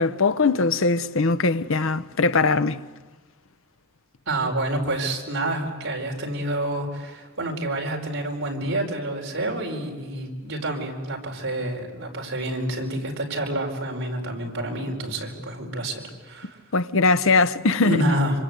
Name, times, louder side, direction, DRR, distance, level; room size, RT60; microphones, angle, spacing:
voice 1, 0.0-2.8 16.7-18.0, left 3 dB, 65° left, 0.9 m, -21 dB
voice 2, 4.3-16.6 17.8-18.3, right 1 dB, 60° right, 4.8 m, -28 dB
26.0 x 26.0 x 8.2 m
head